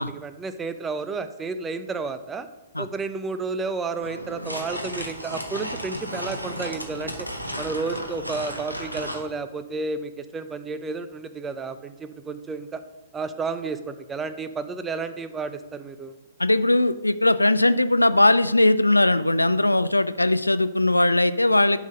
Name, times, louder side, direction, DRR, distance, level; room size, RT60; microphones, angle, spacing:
voice 1, 0.0-2.5 2.8-7.2 7.6-12.8 13.1-16.1, right 4 dB, 15° right, 11 dB, 0.5 m, -31 dB
sound 1, 4.0-9.2, equal, 85° right, 1.3 m, -34 dB
voice 2, 16.4-21.8, left 2 dB, 85° left, 14 dB, 0.3 m, -19 dB
10.5 x 4.0 x 5.1 m, 1.1 s
figure-of-eight pair, 115°, 0 cm